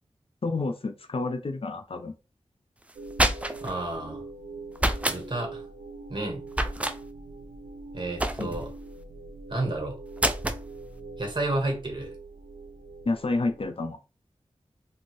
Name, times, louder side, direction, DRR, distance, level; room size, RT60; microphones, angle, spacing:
voice 1, 0.4-2.1 8.4-8.5 13.1-14.0, left 3 dB, 50° left, 6 dB, 0.5 m, -29 dB
sound 1, 2.9-3.8 4.8-5.2 6.5-7.0 8.2-8.7 10.2-10.6, right 1 dB, 10° right, 0.4 m, -26 dB
sound 2, 3.0-13.7, right 3 dB, 80° right, 0.4 m, -43 dB
voice 2, 3.6-4.2 5.0-5.6 6.1-6.4 7.9-8.7 9.5-10.0 11.2-12.1, right 2 dB, 40° right, 1 dB, 1.4 m, -31 dB
2.8 x 2.6 x 3.1 m, 0.31 s
cardioid pair, 45°, 12 cm